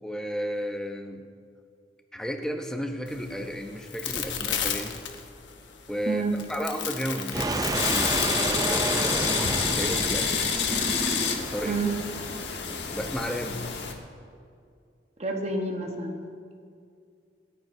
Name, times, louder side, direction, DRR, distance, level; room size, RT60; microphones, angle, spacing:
voice 1, 0.0-1.2 2.1-5.0 5.9-6.2 6.5-10.8 11.4-11.8 12.9-13.6, equal, 5° left, 4 dB, 0.8 m, -33 dB
sound 1, 3.1-8.9, left 8 dB, 85° left, 1.1 m, -34 dB
voice 2, 6.1-6.4 11.6-11.9 15.2-16.2, right 3 dB, 35° right, 3 dB, 1.2 m, -28 dB
sound 2, 7.3-11.6, right 2 dB, 20° right, 0.5 m, -30 dB
sound 3, 7.7-13.9, left 6 dB, 70° left, 1.3 m, -28 dB
27.5 x 9.1 x 2.7 m, 2.3 s
head